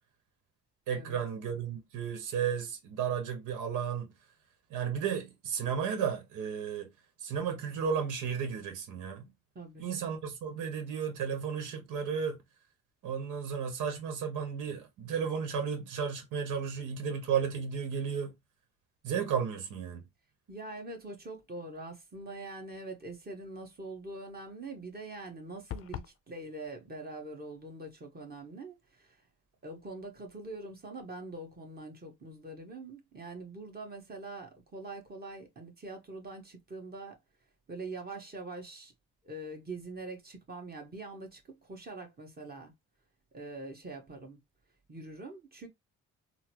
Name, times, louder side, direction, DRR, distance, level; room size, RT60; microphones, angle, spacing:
voice 1, 0.9-4.1 4.7-6.9 7.2-9.3 9.8-12.4 13.0-18.3 19.0-20.0, right 7 dB, 90° right, 1.0 m, -33 dB
voice 2, 9.5-9.9 20.5-29.2 29.6-37.2 37.7-38.9 39.2-42.7 43.3-44.4 44.9-45.7, right 2 dB, 30° right, 1.4 m, -44 dB
sound 1, 25.7-26.2, left 10 dB, 50° left, 0.5 m, -40 dB
3.9 x 2.0 x 2.9 m
cardioid pair, 90°, 30 cm